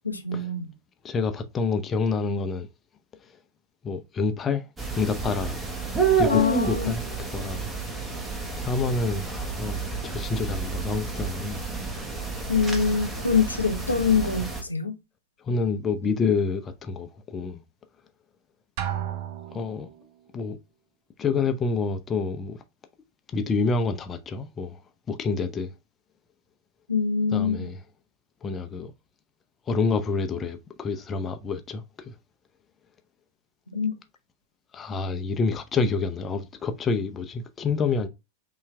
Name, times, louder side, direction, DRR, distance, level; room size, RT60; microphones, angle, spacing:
voice 1, 0.0-0.7 6.3-6.9 12.5-14.9 26.9-27.7 33.7-33.9, left 5 dB, 80° left, 0.6 m, -24 dB
voice 2, 1.0-2.7 3.8-4.6 4.9-5.6 6.2-7.0 7.3-7.7 8.6-11.6 15.4-17.6 19.5-19.9 20.3-20.6 21.2-22.6 23.3-24.8 25.1-25.7 27.3-27.8 28.4-28.9 29.7-32.1 34.7-38.1, left 4 dB, 20° left, 0.5 m, -28 dB
sound 1, 4.8-14.6, right 4 dB, 15° right, 0.9 m, -30 dB
Drum, 18.8-20.0, right 10 dB, 50° right, 0.5 m, -32 dB
5.6 x 2.4 x 3.1 m
figure-of-eight pair, 90°, 0 cm